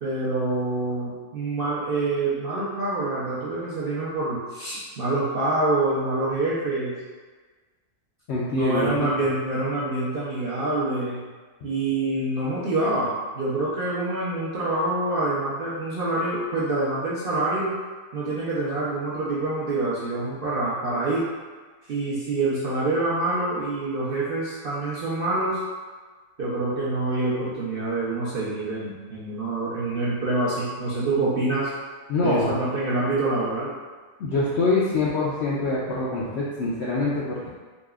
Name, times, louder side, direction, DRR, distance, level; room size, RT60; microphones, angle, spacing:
voice 1, 0.0-7.0 8.5-11.2 11.6-17.7 18.1-21.3 21.9-25.6 26.4-31.7 32.2-33.7, right 2 dB, 55° right, -9 dB, 0.6 m, -26 dB
voice 2, 8.3-9.3 32.1-32.6 34.2-37.5, left 2 dB, 70° left, -7 dB, 0.6 m, -25 dB
4.0 x 2.8 x 2.3 m, 1.4 s
omnidirectional pair, 1.6 m